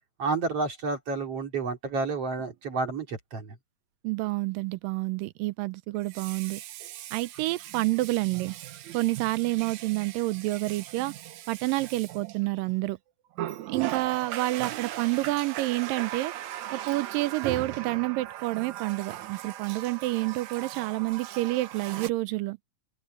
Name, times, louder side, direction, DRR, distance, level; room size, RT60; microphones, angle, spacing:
voice 1, 0.2-3.5, right 4 dB, 45° right, 3.5 m, -30 dB
Water tap faucet, 2.4-2.5 6.0-12.8 13.3-22.1, right 13 dB, 70° right, 2.0 m, -39 dB
voice 2, 4.0-6.6 7.1-8.6 8.9-11.1 11.5-13.0 13.7-16.3 16.7-22.6, right 20 dB, 90° right, 2.3 m, -28 dB
open air
omnidirectional pair, 4.0 m